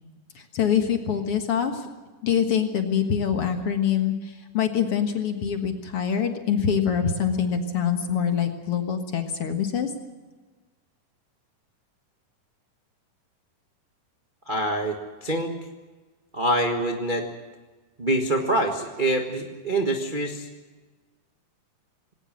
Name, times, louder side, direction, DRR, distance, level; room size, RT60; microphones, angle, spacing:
voice 1, 0.4-1.9 2.2-9.9, left 8 dB, 50° left, 5 dB, 2.1 m, -25 dB
voice 2, 14.5-15.5 16.3-17.3 18.0-20.5, right 1 dB, 45° right, 2 dB, 0.6 m, -25 dB
20.0 x 18.0 x 7.6 m, 1.3 s
omnidirectional pair, 3.8 m